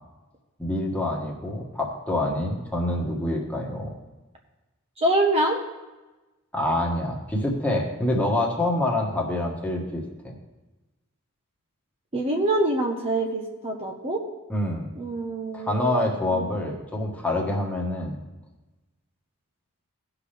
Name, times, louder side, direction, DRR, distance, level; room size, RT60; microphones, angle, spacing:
voice 1, 0.6-3.9 6.5-10.3 14.5-14.9 15.5-18.2, left 1 dB, 5° left, -1 dB, 1.5 m, -26 dB
voice 2, 5.0-5.6 12.1-14.2 15.0-16.5, right 1 dB, 30° right, 1 dB, 0.9 m, -25 dB
17.0 x 5.8 x 3.4 m, 1.1 s
head